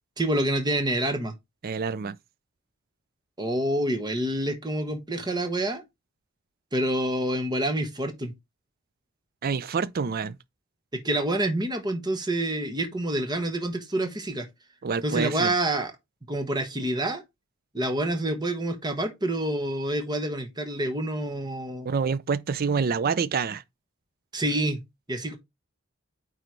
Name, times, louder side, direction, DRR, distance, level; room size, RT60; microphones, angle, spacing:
voice 1, 0.2-1.3 3.4-5.8 6.7-8.3 10.9-14.5 15.0-15.9 16.3-17.2 17.7-21.9 24.3-24.8 25.1-25.4, right 1 dB, 20° right, 1.1 m, -27 dB
voice 2, 1.6-2.2 9.4-10.4 14.8-15.5 21.8-23.6, right 5 dB, 45° right, 0.4 m, -27 dB
9.0 x 3.2 x 4.6 m
head